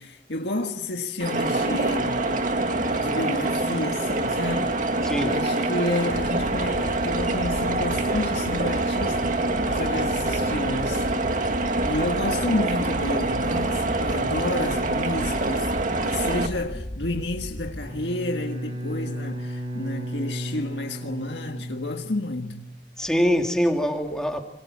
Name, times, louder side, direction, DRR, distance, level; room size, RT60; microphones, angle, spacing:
voice 1, 0.0-2.3 2.9-4.8 5.2-11.0 11.3-11.5 11.8-15.7 16.0-22.6, left 2 dB, 80° left, 1.7 m, -30 dB
sound 1, 1.2-16.5, right 2 dB, 50° right, 2.0 m, -25 dB
voice 2, 5.0-5.4 23.0-24.4, equal, 5° left, 2.3 m, -23 dB
sound 2, 6.1-17.9, equal, 55° left, 1.8 m, -36 dB
Bowed string instrument, 17.8-22.5, equal, 35° right, 4.8 m, -34 dB
27.0 x 24.0 x 7.4 m
head